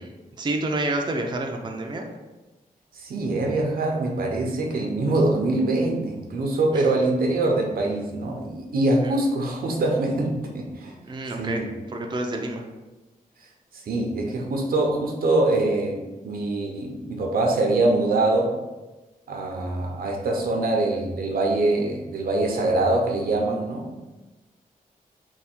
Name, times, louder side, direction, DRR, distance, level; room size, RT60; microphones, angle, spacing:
voice 1, 0.4-2.1 6.7-6.9 11.0-12.7, right 2 dB, 30° right, 2 dB, 0.5 m, -29 dB
voice 2, 2.9-10.9 11.4-11.7 13.8-16.0 16.2-18.5 19.3-23.9, right 2 dB, 85° right, 1 dB, 0.7 m, -24 dB
3.4 x 2.3 x 4.4 m, 1.1 s
cardioid pair, 80°, 15 cm